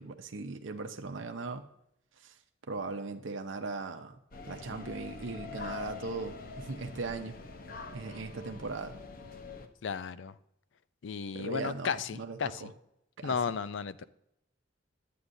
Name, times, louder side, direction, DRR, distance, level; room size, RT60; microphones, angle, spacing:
voice 1, 0.0-1.6 2.2-2.4 2.7-4.2 4.5-7.4 7.9-8.9 11.3-12.7 13.2-13.4, right 3 dB, 85° right, 6 dB, 0.7 m, -39 dB
sound 1, 4.3-9.7, left 4 dB, 50° left, 0.8 m, -45 dB
voice 2, 9.8-10.3 11.0-12.6 13.2-14.0, left 6 dB, 75° left, 15 dB, 0.4 m, -34 dB
11.0 x 8.5 x 2.6 m, 0.80 s
head